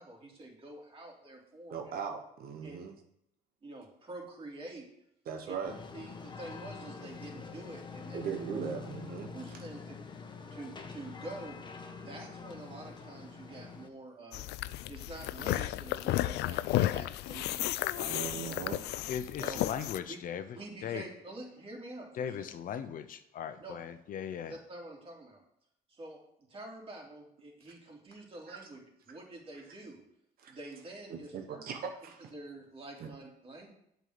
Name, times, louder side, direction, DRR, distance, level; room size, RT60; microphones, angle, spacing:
voice 1, 0.0-2.0 2.6-2.8 3.6-4.9 5.5-5.6 5.9-8.3 9.3-10.0 10.5-11.6 12.0-14.5 14.9-18.2 19.4-19.6 20.1-20.2 20.5-22.4 23.6-23.7 24.5-25.4 25.9-26.2 26.5-28.8 29.1-30.0 30.5-31.6 32.3-33.7, right 2 dB, 35° right, -1 dB, 3.4 m, -47 dB
voice 2, 1.7-3.0 5.2-5.8 8.1-9.3 18.1-18.8 28.5-28.6 30.4-30.6 31.1-32.3 33.0-33.1, right 6 dB, 60° right, 3 dB, 1.2 m, -39 dB
sound 1, 5.6-13.9, left 5 dB, 25° left, 1.2 m, -46 dB
sound 2, 14.3-20.0, left 15 dB, 80° left, 0.4 m, -33 dB
voice 3, 19.1-20.4 20.8-21.0 22.1-24.5, left 8 dB, 55° left, 10 dB, 0.8 m, -38 dB
8.2 x 5.5 x 7.7 m, 0.75 s
cardioid pair, 110°, 17 cm